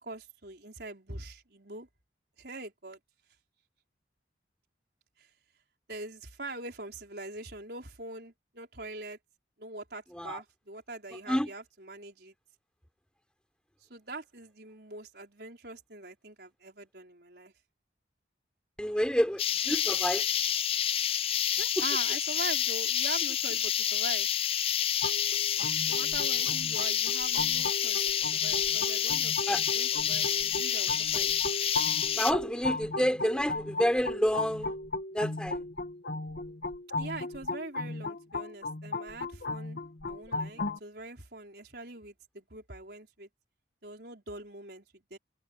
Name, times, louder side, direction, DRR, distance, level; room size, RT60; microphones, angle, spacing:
voice 1, 0.0-1.9 2.4-3.0 5.2-5.3 5.9-9.2 9.6-12.3 13.8-17.5 21.6-24.3 25.8-31.3 37.0-39.8 40.0-43.3 43.8-45.2, right 2 dB, 60° right, 5.1 m, -43 dB
voice 2, 18.8-20.3 21.8-21.9 29.5-29.6 32.1-34.8 35.1-35.6, equal, 5° left, 3.8 m, -29 dB
sound 1, 19.4-32.3, left 10 dB, 30° left, 0.4 m, -28 dB
sound 2, 25.0-40.8, left 2 dB, 60° left, 1.5 m, -36 dB
head